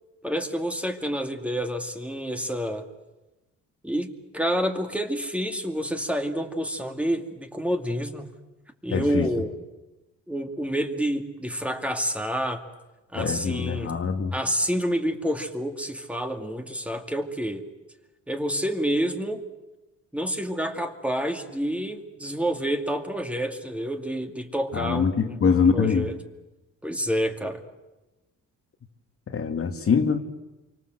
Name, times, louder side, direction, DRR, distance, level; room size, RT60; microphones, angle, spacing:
voice 1, 0.2-2.9 3.8-8.3 8.8-9.5 10.3-12.6 13.1-13.9 14.3-17.6 18.3-19.4 20.1-25.4 25.7-26.1 26.8-27.6, equal, 5° right, 2.4 m, -28 dB
voice 2, 8.9-9.3 13.1-14.3 24.7-26.1 29.3-30.2, left 6 dB, 45° left, 2.2 m, -23 dB
27.5 x 24.5 x 7.9 m
cardioid pair, 90°, 30 cm